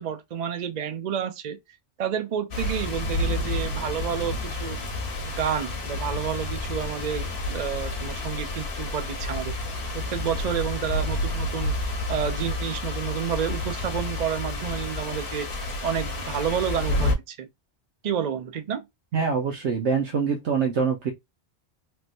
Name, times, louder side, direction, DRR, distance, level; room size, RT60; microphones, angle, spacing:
voice 1, 0.0-1.6 2.0-4.8 5.2-9.5 9.9-15.5 15.8-17.5 18.0-18.9, right 8 dB, 55° right, 0.5 m, -30 dB
sound 1, 2.5-17.1, left 2 dB, 60° left, 1.0 m, -30 dB
voice 2, 19.1-21.1, right 5 dB, 80° right, 1.1 m, -24 dB
3.4 x 2.8 x 2.5 m
omnidirectional pair, 1.2 m